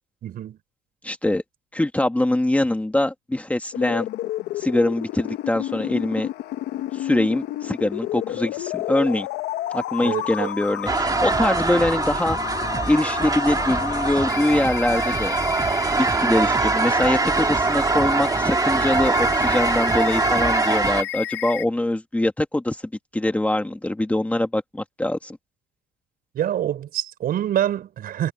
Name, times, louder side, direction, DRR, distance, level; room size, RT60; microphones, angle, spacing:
voice 1, 0.2-0.6 10.0-10.5 26.3-28.3, right 11 dB, 60° right, 5.9 m, -26 dB
voice 2, 1.0-1.4 1.7-4.1 4.6-6.3 6.9-9.3 9.7-12.4 12.9-15.3 16.0-22.8 23.1-25.4, left 1 dB, 10° left, 2.1 m, -23 dB
sound 1, 3.7-21.7, left 13 dB, 80° left, 1.2 m, -31 dB
sound 2, 10.9-21.0, right 4 dB, 20° right, 2.3 m, -23 dB
cardioid pair, 110°, 17 cm